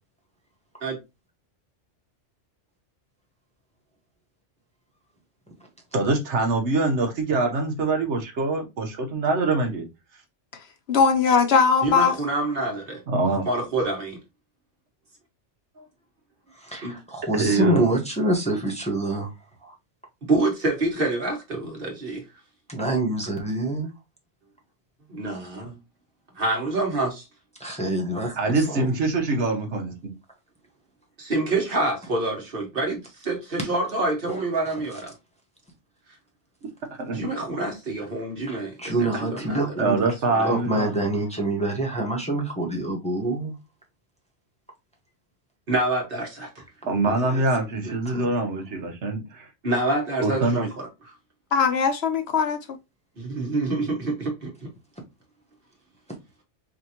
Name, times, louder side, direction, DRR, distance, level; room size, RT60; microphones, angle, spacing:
voice 1, 5.9-9.9 13.1-13.4 17.3-17.8 28.4-30.1 37.0-37.2 39.8-41.1 46.9-49.5 50.2-50.7, right 3 dB, 70° right, 1.3 m, -24 dB
voice 2, 10.9-12.1 51.5-52.6, left 5 dB, 65° left, 0.9 m, -20 dB
voice 3, 11.8-13.0 13.5-14.2 15.8-15.9 16.8-17.0 20.2-22.2 25.1-25.8 26.4-27.2 31.2-35.1 37.1-40.5 45.7-46.6 49.6-50.9 53.2-54.7, right 2 dB, 50° right, 1.5 m, -27 dB
voice 4, 16.5-19.3 19.6-19.7 22.7-23.9 27.6-28.9 38.5-40.0 40.4-43.5 46.8-46.9 47.2-47.4 47.8-48.3, right 1 dB, 5° left, 1.1 m, -26 dB
5.0 x 2.6 x 2.8 m
omnidirectional pair, 1.2 m